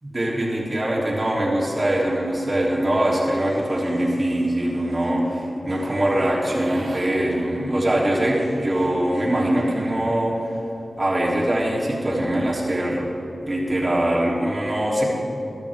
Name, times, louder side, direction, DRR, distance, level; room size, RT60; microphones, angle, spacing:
voice 1, 0.0-10.4 11.0-13.1 13.4-15.0, right 1 dB, 35° right, -4 dB, 3.4 m, -22 dB
sound 1, 2.2-2.6 3.1-9.9, right 1 dB, 85° right, 2.5 m, -42 dB
21.5 x 12.5 x 3.7 m, 2.9 s
wide cardioid pair, 60°, 0 cm